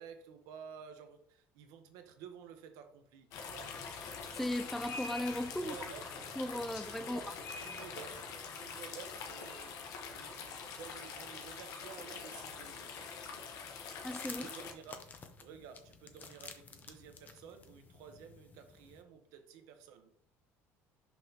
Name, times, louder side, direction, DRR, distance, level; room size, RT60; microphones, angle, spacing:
voice 1, 0.0-3.8 5.6-6.1 7.0-13.1 14.2-15.1 15.4-20.1, right 8 dB, 80° right, 1.0 m, -52 dB
sound 1, 3.3-14.7, left 5 dB, 70° left, 1.2 m, -44 dB
voice 2, 4.3-5.7 6.4-7.3 14.0-14.5, left 1 dB, 5° left, 0.3 m, -37 dB
sound 2, 14.0-19.0, left 5 dB, 30° left, 0.7 m, -52 dB
6.0 x 5.6 x 2.9 m
cardioid pair, 135°, 6 cm